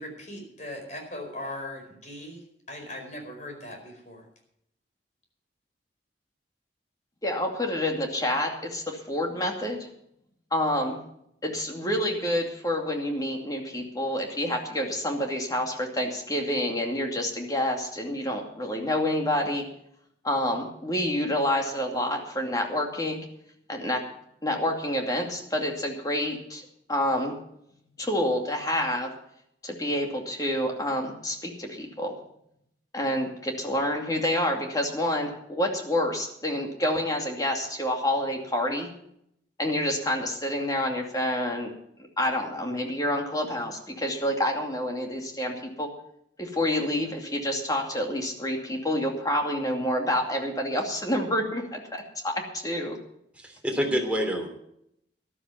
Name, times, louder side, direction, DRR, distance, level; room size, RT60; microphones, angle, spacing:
voice 1, 0.0-4.3, left 1 dB, 40° left, 2 dB, 4.8 m, -39 dB
voice 2, 7.2-9.9 10.5-11.0 11.4-19.6 20.2-23.2 23.7-24.0 24.4-27.3 28.0-29.1 29.6-32.2 32.9-38.9 39.6-41.7 42.2-45.9 46.4-53.0, left 1 dB, 20° left, 2 dB, 2.5 m, -28 dB
voice 3, 53.4-54.5, equal, 10° right, 1 dB, 3.1 m, -27 dB
13.0 x 12.0 x 5.8 m, 0.75 s
head